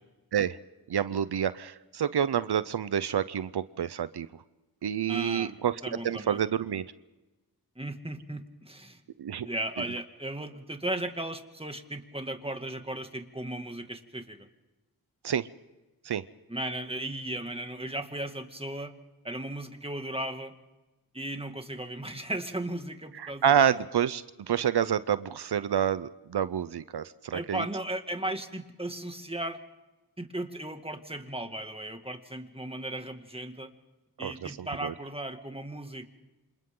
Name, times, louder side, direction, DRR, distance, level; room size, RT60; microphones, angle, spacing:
voice 1, 0.9-4.3 4.8-5.8 6.0-6.8 9.2-9.5 15.2-15.5 16.0-16.2 23.2-27.6 34.2-34.9, right 9 dB, 85° right, 15 dB, 0.6 m, -28 dB
voice 2, 5.1-5.5 5.8-6.4 7.8-9.0 9.4-14.5 16.5-18.9 19.2-20.5 21.1-23.7 27.3-29.6 30.2-33.7 34.2-36.1, right 1 dB, 15° right, 6 dB, 2.1 m, -36 dB
28.0 x 27.0 x 3.8 m, 1.1 s
wide cardioid pair, 50°, 38 cm